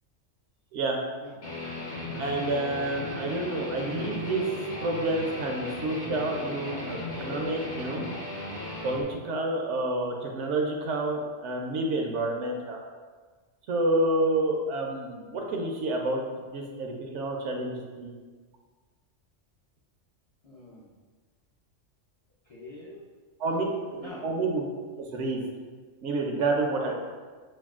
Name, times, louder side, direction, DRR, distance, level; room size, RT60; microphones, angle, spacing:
voice 1, 0.7-1.0 2.2-4.5 4.8-8.1 8.8-12.8 13.7-16.2 16.5-18.1 23.4-23.6 24.0-24.7 25.0-25.4 26.0-26.9, right 2 dB, 70° right, 1 dB, 0.9 m, -29 dB
Guitar, 1.4-9.0, left 2 dB, 65° left, 1.2 m, -36 dB
voice 2, 20.4-20.9 22.4-23.1 24.0-24.2 26.8-26.9, left 2 dB, 50° left, -7 dB, 0.4 m, -45 dB
6.1 x 2.3 x 2.3 m, 1.4 s
omnidirectional pair, 1.3 m